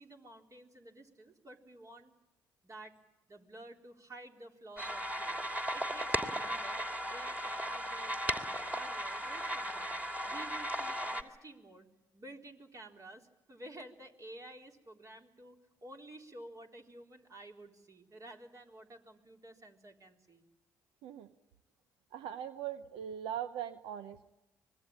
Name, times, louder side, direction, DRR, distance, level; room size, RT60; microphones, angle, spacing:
voice 1, 0.0-2.1 2.6-3.0 3.3-8.2 8.6-10.0 10.3-11.9 12.1-20.4, right 1 dB, 35° right, 2 dB, 3.8 m, -52 dB
sound 1, 4.8-11.2, equal, 15° right, 3.0 m, -36 dB
voice 2, 22.1-24.3, right 10 dB, 80° right, 12 dB, 0.9 m, -40 dB
25.0 x 21.0 x 8.8 m, 1.0 s
hypercardioid pair, 55°, 9 cm